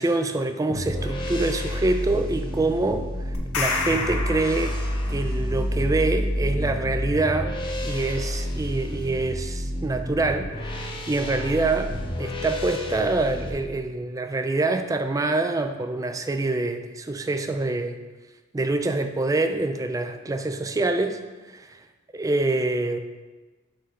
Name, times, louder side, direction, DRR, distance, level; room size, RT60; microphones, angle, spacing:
voice 1, 0.0-3.1 3.6-4.8 5.1-7.6 7.8-18.0 18.5-21.2 21.5-21.7 22.1-23.0, right 2 dB, 15° right, 8 dB, 0.3 m, -25 dB
sound 1, 0.7-13.5, equal, 25° left, 0.7 m, -29 dB
sound 2, 3.3-5.3, left 4 dB, 85° left, 0.9 m, -29 dB
6.5 x 3.7 x 5.3 m, 1.2 s
head